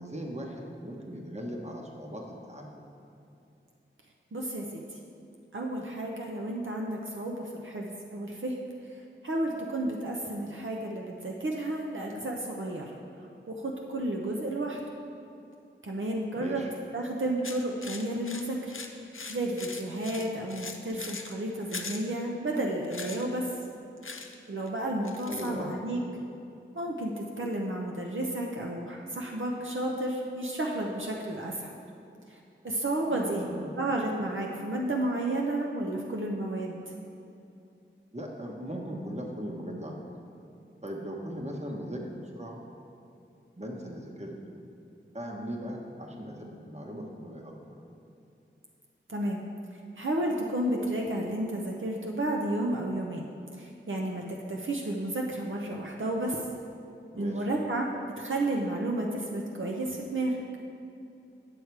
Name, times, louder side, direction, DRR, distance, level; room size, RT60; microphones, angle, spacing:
voice 1, 0.0-2.9 16.3-16.7 25.3-25.8 33.1-33.8 38.1-40.0 40.8-42.6 43.6-44.3 45.1-47.8 57.1-57.5, equal, 35° right, 0 dB, 1.2 m, -38 dB
voice 2, 4.3-4.8 5.5-8.6 9.2-12.8 13.5-14.8 15.8-16.6 16.9-18.7 19.3-23.5 24.5-26.0 26.7-31.7 32.3-32.4 32.6-33.4 33.8-36.8 49.1-49.4 50.0-53.2 53.6-56.4 57.2-57.9 58.2-60.5, right 1 dB, 75° right, -1 dB, 0.7 m, -32 dB
sound 1, 17.4-21.3 21.7-22.1 22.8-23.2 24.0-24.4 24.7-24.8 25.0-25.6, left 4 dB, 80° left, 0.6 m, -41 dB
8.8 x 6.5 x 4.7 m, 2.6 s
wide cardioid pair, 45°, 21 cm